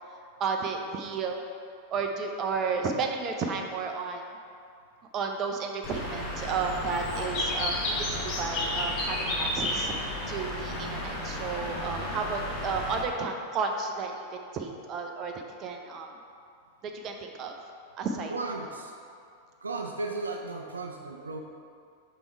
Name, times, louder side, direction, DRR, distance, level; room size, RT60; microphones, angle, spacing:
voice 1, 0.4-1.4 1.9-4.3 5.1-15.3 15.6-16.1 16.8-17.6 18.0-18.3, right 4 dB, 30° right, 3 dB, 0.6 m, -32 dB
Bird, 5.8-13.0, left 1 dB, 40° left, 1.1 m, -32 dB
voice 2, 18.3-19.0 19.6-21.4, right 3 dB, 75° right, 2 dB, 0.4 m, -35 dB
5.3 x 4.7 x 4.5 m, 2.4 s
figure-of-eight pair, 90°, 0 cm